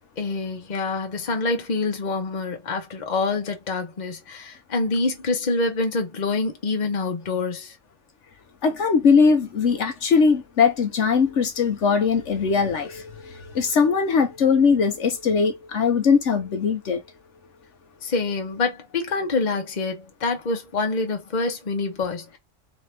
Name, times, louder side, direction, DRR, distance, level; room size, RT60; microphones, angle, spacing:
voice 1, 0.2-7.8 18.0-22.4, left 3 dB, 40° left, 1.0 m, -26 dB
voice 2, 8.6-17.0, left 5 dB, 70° left, 1.1 m, -20 dB
4.1 x 2.8 x 3.4 m
omnidirectional pair, 1.3 m